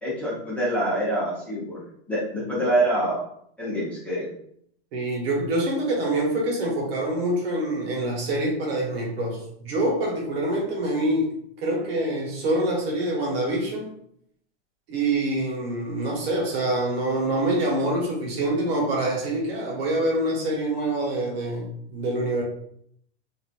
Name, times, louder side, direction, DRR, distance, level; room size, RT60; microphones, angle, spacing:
voice 1, 0.0-3.2 3.6-4.3, right 1 dB, 5° left, -9 dB, 0.9 m, -26 dB
voice 2, 4.9-13.9 14.9-22.4, right 1 dB, 60° right, -1 dB, 1.1 m, -25 dB
3.0 x 2.5 x 2.5 m, 0.68 s
hypercardioid pair, 140°, 34 cm